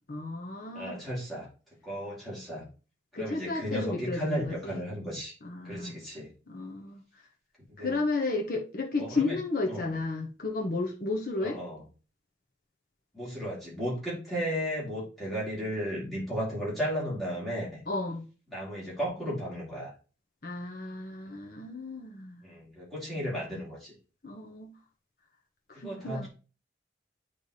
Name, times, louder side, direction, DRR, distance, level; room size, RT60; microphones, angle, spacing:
voice 1, 0.1-0.9 3.1-4.8 5.4-6.0 6.5-7.0 7.8-11.6 17.9-18.2 20.4-22.4 24.2-24.7 25.7-26.3, left 3 dB, 55° left, 0 dB, 1.0 m, -33 dB
voice 2, 0.7-1.5 1.8-2.7 3.2-5.3 5.6-6.3 7.8-8.0 9.0-9.4 9.7-10.0 11.4-11.8 13.1-17.8 18.5-19.9 21.2-21.4 22.4-23.9 25.7-26.3, equal, ahead, -8 dB, 3.3 m, -34 dB
8.3 x 3.4 x 4.1 m, 0.35 s
head